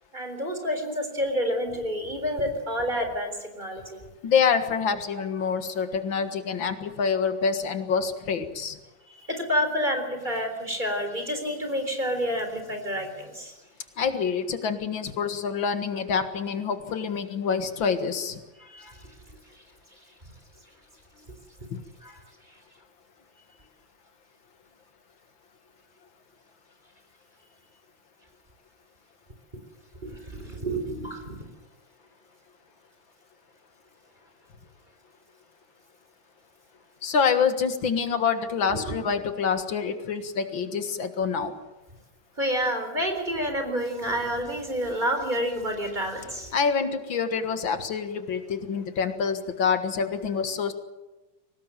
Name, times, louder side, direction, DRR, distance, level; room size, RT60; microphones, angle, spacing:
voice 1, 0.1-4.0 9.1-13.5 18.6-18.9 22.0-22.1 30.0-31.4 38.7-38.9 41.4-41.5 42.4-46.5, equal, 25° right, 5 dB, 4.2 m, -29 dB
voice 2, 4.2-8.8 14.0-18.4 37.0-41.5 46.5-50.7, left 6 dB, 90° left, 9 dB, 2.5 m, -26 dB
23.0 x 19.0 x 9.1 m, 1.1 s
omnidirectional pair, 2.0 m